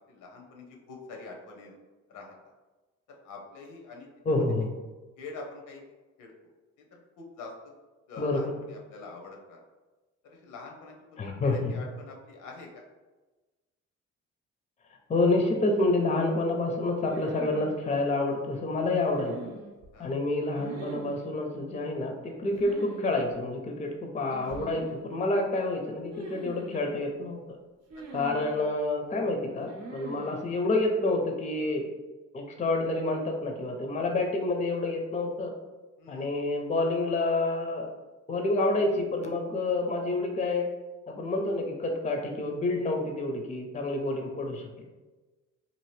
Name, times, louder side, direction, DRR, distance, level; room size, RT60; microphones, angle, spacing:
voice 1, 0.1-1.8 2.1-2.3 3.2-4.1 5.2-5.8 6.2-6.3 6.9-7.5 8.1-9.6 10.4-12.7 19.9-20.1 28.1-28.3 36.0-36.3, left 3 dB, 85° left, 1 dB, 0.7 m, -45 dB
voice 2, 4.2-4.7 8.2-8.6 11.2-11.8 15.1-19.5 20.0-27.4 28.1-31.8 32.3-35.5 36.1-37.9 38.3-40.7 41.1-44.7, left 2 dB, 25° left, 2 dB, 0.5 m, -28 dB
sound 1, 17.1-17.8 19.1-19.9 20.6-21.3 22.6-23.0 23.3-23.4 24.3-25.0 26.1-26.9 27.9-28.7 29.7-30.4, right 2 dB, 55° right, 0.7 m, -42 dB
2.7 x 2.5 x 3.2 m, 1.2 s
cardioid pair, 90°, 30 cm